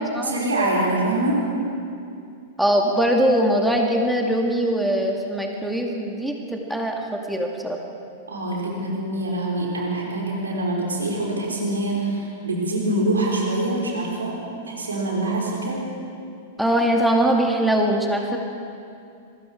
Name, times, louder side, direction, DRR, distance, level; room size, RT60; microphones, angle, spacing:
voice 1, 0.2-1.4 8.3-15.8, right 1 dB, 80° right, -2 dB, 5.5 m, -25 dB
voice 2, 2.6-7.8 16.6-18.4, right 1 dB, ahead, 1 dB, 2.3 m, -22 dB
26.5 x 22.0 x 4.9 m, 2.5 s
figure-of-eight pair, 100°, 0 cm